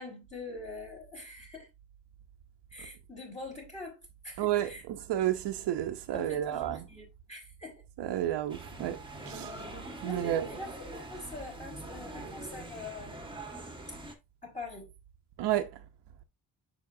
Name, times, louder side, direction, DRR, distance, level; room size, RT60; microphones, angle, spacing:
voice 1, 0.0-1.7 2.7-4.8 6.1-7.8 10.0-13.2 14.4-14.9, left 2 dB, 15° left, 4.3 m, -44 dB
voice 2, 4.4-6.8 8.0-9.0 9.2-9.7 10.0-10.5 15.4-15.7, right 12 dB, 85° right, 0.7 m, -31 dB
sound 1, 8.5-14.1, right 1 dB, 10° right, 1.5 m, -43 dB
6.8 x 5.7 x 2.7 m
cardioid pair, 100°, 40 cm